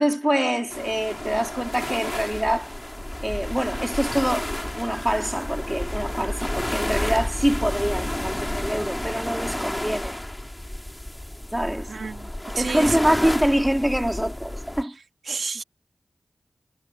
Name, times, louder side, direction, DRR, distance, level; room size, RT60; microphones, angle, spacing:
voice 1, 0.0-2.7 3.2-10.2 11.5-11.9 12.5-14.9, equal, 10° right, 2.9 m, -25 dB
sound 1, 0.7-14.8, left 1 dB, 15° left, 2.1 m, -31 dB
voice 2, 11.9-13.0 15.3-15.6, right 4 dB, 85° right, 1.6 m, -30 dB
cardioid pair, 45°, 0 cm